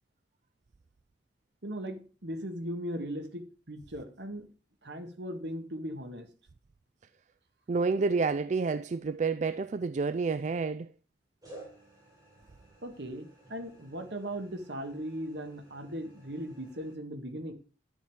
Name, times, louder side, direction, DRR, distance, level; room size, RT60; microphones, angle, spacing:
voice 1, 1.6-4.5 4.8-6.3 12.8-17.5, equal, 70° right, 1.8 m, -38 dB
voice 2, 7.7-10.9, right 4 dB, 40° right, 0.4 m, -29 dB
sound 1, 9.5-10.1 11.4-16.9, right 1 dB, 20° right, 5.3 m, -55 dB
11.0 x 7.2 x 4.6 m
head